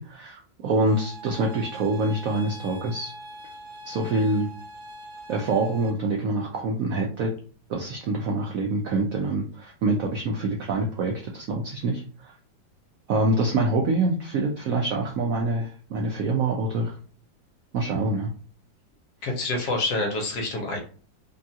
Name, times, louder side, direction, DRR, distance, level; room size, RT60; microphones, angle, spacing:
voice 1, 0.0-3.1 3.9-4.5 5.3-7.3 7.7-12.3 13.1-17.0 17.7-18.3, right 2 dB, 75° right, -1 dB, 0.7 m, -25 dB
sound 1, 0.9-5.9, right 1 dB, 35° right, 1.5 m, -42 dB
voice 2, 19.2-20.8, left 2 dB, 65° left, 1 dB, 1.3 m, -27 dB
3.5 x 2.3 x 2.7 m, 0.41 s
omnidirectional pair, 2.0 m